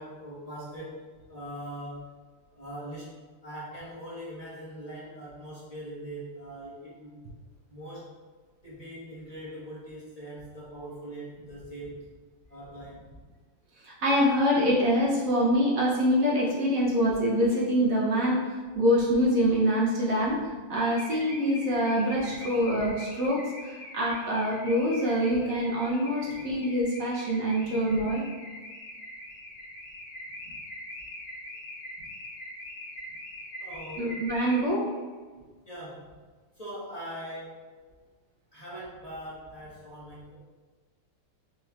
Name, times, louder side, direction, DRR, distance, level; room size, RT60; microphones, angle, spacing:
voice 1, 0.0-2.0 2.5-3.1 3.4-7.2 7.7-8.1 8.6-12.0 12.5-13.1 30.4-30.5 32.0-32.1 33.6-34.1 35.6-36.2 36.6-37.6 38.5-40.4, right 1 dB, 25° left, -9 dB, 0.8 m, -41 dB
voice 2, 13.8-28.2 34.0-34.9, equal, 60° right, -4 dB, 0.9 m, -25 dB
Car / Alarm, 20.8-34.9, left 1 dB, 90° left, 1.5 m, -43 dB
6.3 x 2.9 x 2.3 m, 1.4 s
omnidirectional pair, 2.0 m